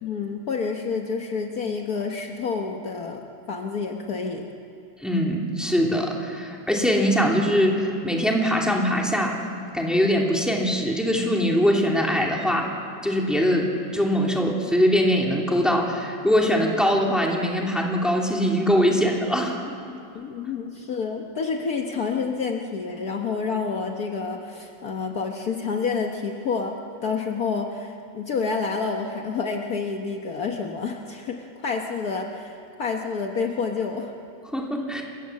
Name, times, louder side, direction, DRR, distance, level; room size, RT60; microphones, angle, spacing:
voice 1, 0.0-4.5 20.1-34.1, left 5 dB, 60° left, 2 dB, 1.6 m, -29 dB
voice 2, 5.0-9.4 9.7-12.7 13.0-19.8 34.5-35.0, equal, ahead, -1 dB, 2.5 m, -22 dB
27.0 x 16.0 x 7.6 m, 2.5 s
omnidirectional pair, 2.0 m